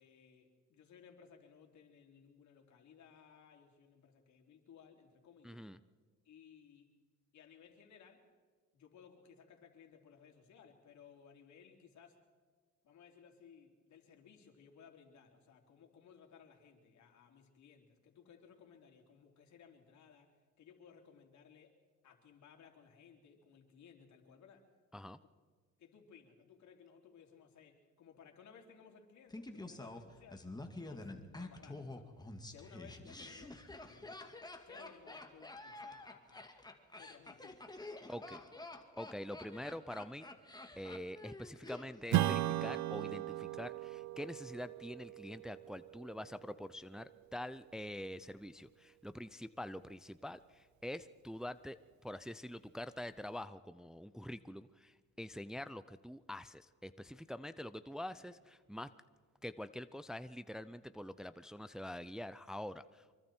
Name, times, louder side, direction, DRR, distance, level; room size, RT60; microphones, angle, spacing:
voice 1, 0.0-5.7 6.2-6.9 7.3-8.2 8.7-12.2 12.8-21.7 22.0-24.7 25.8-30.5 30.7-34.4 34.7-36.6 37.0-37.6 38.0-38.5 58.2-58.4, left 7 dB, 70° left, 2 dB, 3.6 m, -60 dB
voice 2, 5.4-5.8 24.9-25.2 38.1-38.4 39.0-40.3 40.8-51.8 52.0-58.9 59.4-63.2, left 1 dB, ahead, 13 dB, 0.6 m, -45 dB
Laughter, 29.3-42.3 42.6-42.7, left 2 dB, 15° left, 2.1 m, -49 dB
Strum, 42.1-47.0, right 13 dB, 70° right, 0.7 m, -37 dB
25.5 x 23.5 x 4.5 m, 1.5 s
cardioid pair, 90°, 30 cm